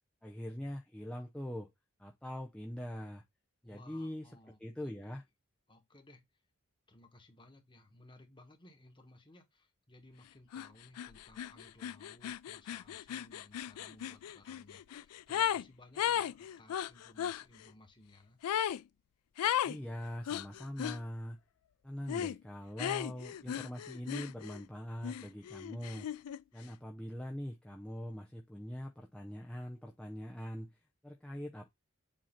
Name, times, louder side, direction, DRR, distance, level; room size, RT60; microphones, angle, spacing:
voice 1, 0.2-1.7 2.0-3.2 3.6-4.3 4.6-5.2 19.6-21.4 21.8-26.1 26.5-31.7, equal, 5° left, 0.5 m, -43 dB
voice 2, 3.6-4.9 5.7-6.2 6.9-18.4, left 1 dB, 20° left, 1.3 m, -59 dB
sound 1, 10.5-10.7 11.0-15.7 16.0-17.4 18.4-18.8 19.4-19.8 20.3-21.0 22.1-22.4 22.8-24.6 25.0-26.4, left 10 dB, 90° left, 0.3 m, -36 dB
7.6 x 2.8 x 5.7 m
head